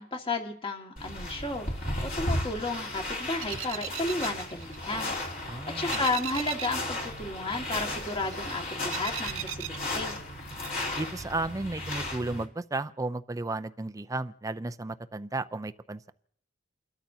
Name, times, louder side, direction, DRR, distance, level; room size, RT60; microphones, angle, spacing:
voice 1, 0.0-10.1, left 2 dB, 25° left, 2 dB, 1.7 m, -33 dB
sound 1, 1.0-12.4, left 1 dB, 45° left, 2.9 m, -35 dB
sound 2, 3.4-5.4 5.7-6.9 7.2-10.3 10.6-11.2, right 14 dB, 80° right, 0.5 m, -39 dB
voice 2, 5.5-6.0 11.0-16.1, right 2 dB, 15° right, 11 dB, 0.5 m, -34 dB
29.5 x 13.0 x 2.8 m, 0.66 s
head